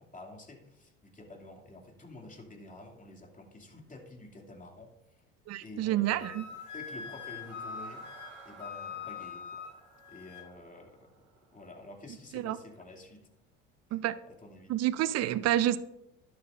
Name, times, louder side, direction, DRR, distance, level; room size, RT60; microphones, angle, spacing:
voice 1, 0.0-5.2 5.6-6.4 6.7-9.6 10.1-11.2 11.5-13.2 13.9-14.0 14.4-14.7, left 2 dB, 20° left, 2.6 m, -49 dB
voice 2, 5.5-6.4 12.3-12.6 13.9-14.1 14.7-15.8, right 13 dB, 45° right, 0.6 m, -28 dB
sound 1, 6.1-12.2, right 5 dB, 75° right, 4.1 m, -55 dB
Wind instrument woodwind instrument, 6.2-10.5, left 6 dB, 55° left, 1.6 m, -43 dB
12.5 x 11.5 x 2.6 m
hypercardioid pair, 70°, 37 cm